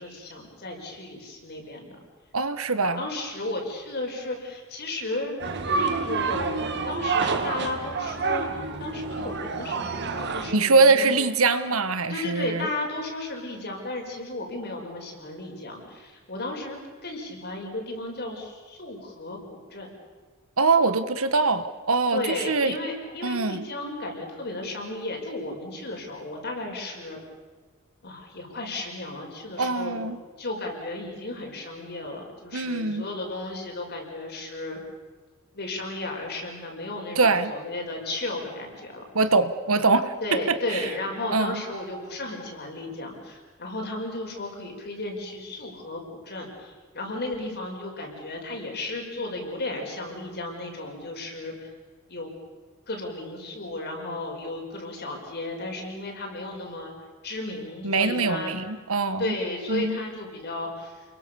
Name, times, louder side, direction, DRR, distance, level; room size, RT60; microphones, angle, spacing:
voice 1, 0.0-2.0 3.0-8.5 8.8-11.2 12.1-19.9 22.1-27.2 28.0-30.0 30.4-34.8 35.5-39.0 40.2-51.7 52.1-52.3 52.9-56.9 57.2-58.5 59.2-61.0, left 2 dB, 50° left, 1 dB, 5.8 m, -34 dB
voice 2, 2.3-3.0 10.5-12.7 20.6-22.7 23.2-23.6 29.6-30.2 32.5-33.1 37.1-37.5 39.1-40.9 41.3-41.6 57.8-59.3 59.7-60.0, right 3 dB, 75° right, 12 dB, 1.5 m, -23 dB
sound 1, 5.4-10.5, right 4 dB, 55° right, 2.0 m, -28 dB
29.5 x 22.5 x 7.1 m, 1.4 s
head